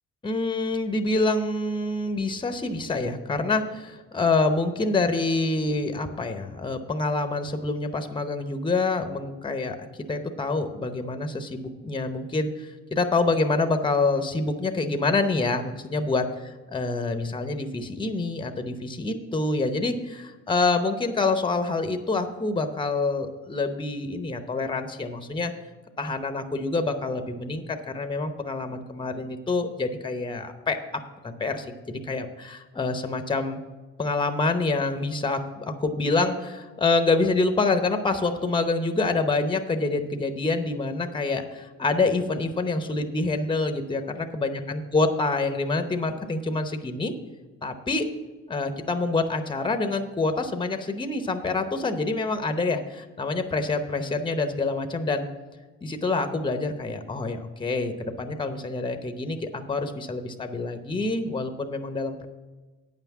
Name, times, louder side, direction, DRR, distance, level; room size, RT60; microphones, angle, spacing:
voice 1, 0.2-25.5 26.0-30.8 31.2-33.6 34.0-47.1 47.6-48.1 48.5-55.3 55.8-62.3, left 3 dB, 15° left, 7 dB, 0.8 m, -26 dB
8.9 x 5.8 x 7.2 m, 1.3 s
cardioid pair, 90°, 30 cm